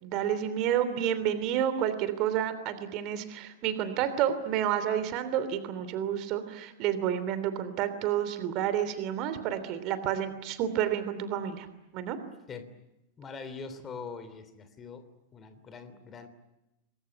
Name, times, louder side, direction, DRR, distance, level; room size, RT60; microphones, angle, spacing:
voice 1, 0.0-11.7 11.9-12.2, right 10 dB, 40° right, 11 dB, 3.1 m, -30 dB
voice 2, 13.2-15.0 15.3-16.3, left 5 dB, 25° left, 11 dB, 3.2 m, -43 dB
28.0 x 21.5 x 9.9 m, 0.93 s
figure-of-eight pair, 90°, 0 cm